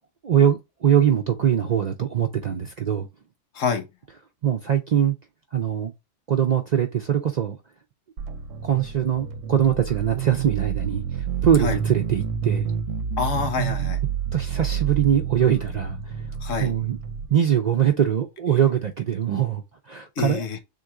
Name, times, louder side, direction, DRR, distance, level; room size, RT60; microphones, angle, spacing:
voice 1, 0.2-3.1 4.4-5.2 5.5-5.9 6.3-7.6 8.6-12.7 14.3-16.2 16.6-17.0 17.3-20.4, right 9 dB, 55° right, 0.4 m, -22 dB
voice 2, 3.5-3.9 11.6-11.8 13.2-14.0 16.4-16.7 20.2-20.6, left 5 dB, 85° left, 1.2 m, -26 dB
sound 1, 8.2-17.3, right 8 dB, 90° right, 1.0 m, -29 dB
3.7 x 2.6 x 4.5 m
omnidirectional pair, 1.3 m